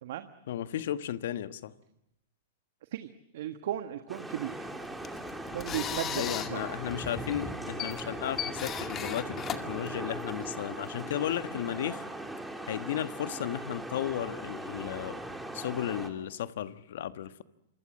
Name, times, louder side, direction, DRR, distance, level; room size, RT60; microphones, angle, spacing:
voice 1, 0.5-1.7 6.2-12.0 12.7-15.2 15.5-17.4, left 11 dB, 65° left, 12 dB, 1.3 m, -34 dB
voice 2, 2.9-4.7 5.5-6.6, right 11 dB, 65° right, 9 dB, 1.4 m, -36 dB
sound 1, 4.1-16.1, right 1 dB, 5° right, 3.3 m, -39 dB
sound 2, 4.8-10.5, left 9 dB, 30° left, 2.1 m, -38 dB
27.0 x 25.0 x 7.6 m, 0.82 s
hypercardioid pair, 110°, 0 cm